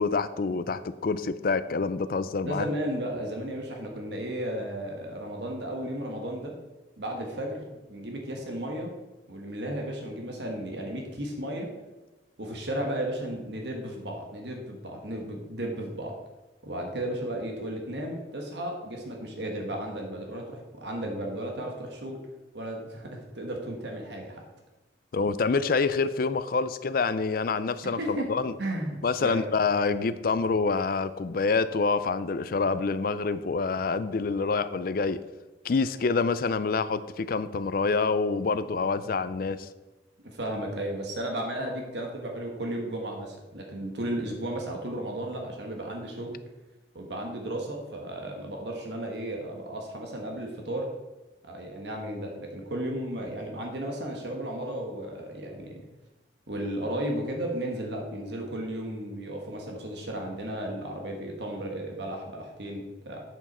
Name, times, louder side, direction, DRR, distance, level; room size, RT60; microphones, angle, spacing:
voice 1, 0.0-2.7 25.1-28.5 29.0-35.2 35.6-39.7, left 4 dB, 50° left, 13 dB, 0.4 m, -27 dB
voice 2, 2.4-6.5 7.0-7.6 7.9-8.9 9.3-11.7 12.4-16.2 16.6-22.2 22.5-24.4 27.8-28.3 28.6-29.4 40.2-46.4 46.9-50.9 51.4-55.8 56.5-63.2, right 1 dB, 65° right, 1 dB, 1.4 m, -34 dB
8.0 x 7.1 x 4.3 m, 1.1 s
head